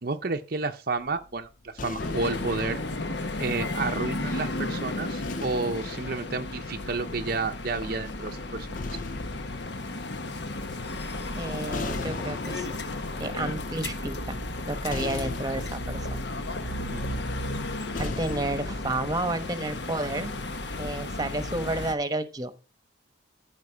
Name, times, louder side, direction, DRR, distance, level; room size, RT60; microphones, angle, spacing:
voice 1, 0.0-2.8 3.4-9.0 16.9-17.2, right 3 dB, 50° right, 0.7 m, -31 dB
sound 1, 1.0-4.3 5.2-7.5 8.4-19.5, left 4 dB, 40° left, 0.5 m, -41 dB
sound 2, 2.0-21.9, left 2 dB, 60° left, 1.2 m, -33 dB
voice 2, 11.4-12.8 13.2-14.4 14.7-16.2 18.0-20.3 20.8-22.5, right 2 dB, 20° right, 1.1 m, -31 dB
14.5 x 5.3 x 5.2 m
head